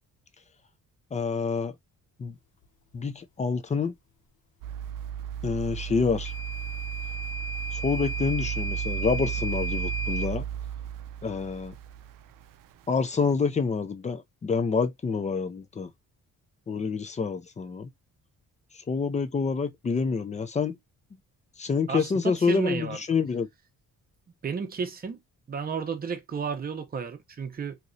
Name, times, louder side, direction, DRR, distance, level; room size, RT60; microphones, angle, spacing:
voice 1, 1.1-1.7 2.2-2.3 2.9-3.9 5.4-6.3 7.7-10.5 11.2-11.7 12.9-15.9 16.7-17.9 18.7-20.8 21.6-23.5, left 5 dB, 20° left, 0.4 m, -27 dB
sound 1, 4.6-12.8 13.3-13.4, right 10 dB, 75° right, 0.5 m, -34 dB
Microwave oven / Alarm, 6.2-10.3, equal, 65° left, 1.4 m, -35 dB
voice 2, 21.9-23.0 24.4-25.2 25.5-27.8, right 6 dB, 30° right, 0.7 m, -32 dB
2.9 x 2.9 x 2.6 m
cardioid pair, 150°, 33 cm